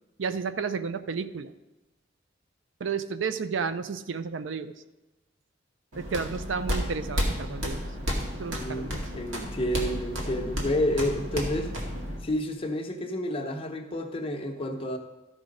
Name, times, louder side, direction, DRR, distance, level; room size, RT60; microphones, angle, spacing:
voice 1, 0.2-1.5 2.8-4.7 6.0-7.8 8.4-9.0, right 5 dB, 75° right, 12 dB, 0.5 m, -32 dB
sound 1, 5.9-12.2, equal, 90° right, 2.0 m, -32 dB
voice 2, 8.5-11.7 12.2-15.0, left 1 dB, 30° left, 3 dB, 0.9 m, -30 dB
13.5 x 4.9 x 5.2 m, 1.0 s
head